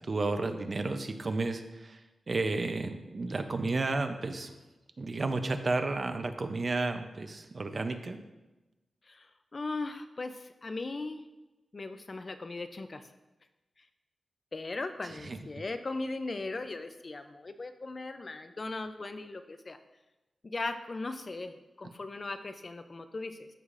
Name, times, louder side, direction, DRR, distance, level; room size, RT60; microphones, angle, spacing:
voice 1, 0.1-2.0 2.3-4.5 5.0-8.2 15.1-15.4, right 3 dB, 40° right, 7 dB, 0.5 m, -32 dB
voice 2, 9.1-11.2 11.7-13.0 14.5-19.8 20.4-23.5, left 3 dB, 35° left, 9 dB, 0.4 m, -38 dB
13.5 x 4.8 x 2.5 m, 1.1 s
wide cardioid pair, 145°, 0 cm